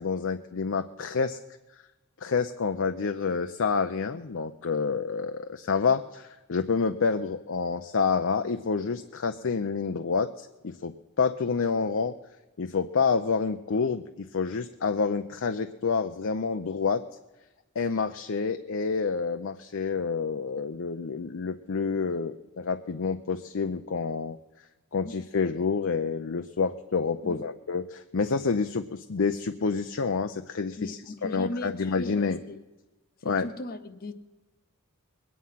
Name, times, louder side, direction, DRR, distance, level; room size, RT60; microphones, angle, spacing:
voice 1, 0.0-1.4 2.2-12.1 12.6-17.0 17.8-24.4 24.9-32.4 33.2-33.5, left 5 dB, 60° left, 7 dB, 0.6 m, -28 dB
voice 2, 30.8-32.7 33.2-34.1, left 2 dB, 40° left, 10 dB, 1.0 m, -38 dB
21.5 x 9.5 x 5.7 m, 1.1 s
head